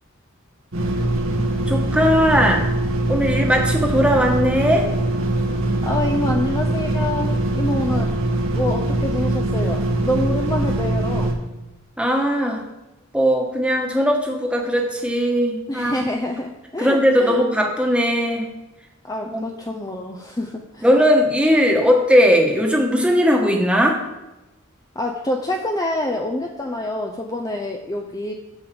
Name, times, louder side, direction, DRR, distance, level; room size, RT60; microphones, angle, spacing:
sound 1, 0.7-11.3, right 1 dB, 85° right, 1.7 m, -22 dB
voice 1, 1.7-2.7 3.1-4.8 7.9-8.0 12.0-12.6 13.1-16.0 16.8-18.5 19.2-19.4 20.8-24.0, equal, 5° right, 0 dB, 1.4 m, -18 dB
voice 2, 5.8-8.1 8.5-11.3 15.7-17.4 19.0-20.8 24.9-28.3, left 1 dB, 20° left, 2 dB, 0.6 m, -26 dB
9.0 x 5.5 x 6.9 m, 1.0 s
head